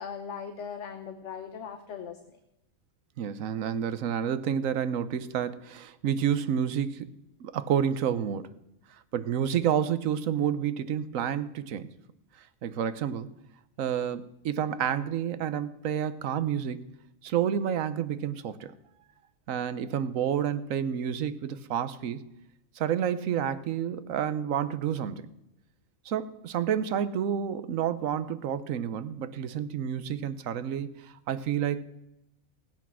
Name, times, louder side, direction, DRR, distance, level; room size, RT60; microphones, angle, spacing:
voice 1, 0.0-2.4, left 7 dB, 60° left, 1.2 m, -39 dB
voice 2, 3.2-7.1 7.4-8.5 9.1-11.9 12.6-13.3 13.8-16.9 17.2-18.7 19.5-22.3 22.8-25.3 26.0-31.8, right 9 dB, 75° right, 1.2 m, -29 dB
16.5 x 8.3 x 6.2 m
omnidirectional pair, 1.5 m